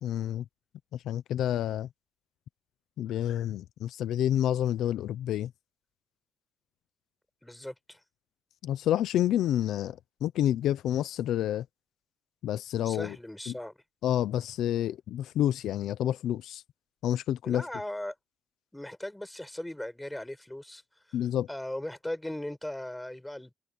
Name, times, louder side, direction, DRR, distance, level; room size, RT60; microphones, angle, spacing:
voice 1, 0.0-0.4 0.9-1.9 3.0-5.5 8.6-11.7 12.4-13.2 13.5-13.6 14.0-16.6 17.0-17.6 21.1-21.5, left 11 dB, 85° left, 0.6 m, -29 dB
voice 2, 7.4-8.0 12.8-13.7 17.4-18.1 18.7-20.8 21.1-21.2 21.5-23.5, left 1 dB, 5° left, 5.8 m, -38 dB
cardioid pair, 160°, 0 cm